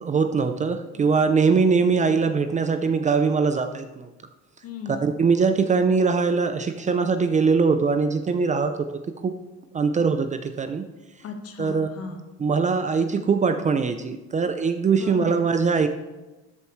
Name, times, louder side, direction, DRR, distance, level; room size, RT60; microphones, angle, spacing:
voice 1, 0.0-4.1 5.0-8.9 9.2-9.3 9.7-10.8 11.6-11.9 12.4-15.9, right 5 dB, 25° right, 8 dB, 0.6 m, -22 dB
voice 2, 4.6-5.2 11.2-12.2 14.9-15.4, left 4 dB, 50° left, 5 dB, 1.5 m, -36 dB
13.0 x 7.9 x 3.2 m, 1.1 s
cardioid pair, 125°, 30 cm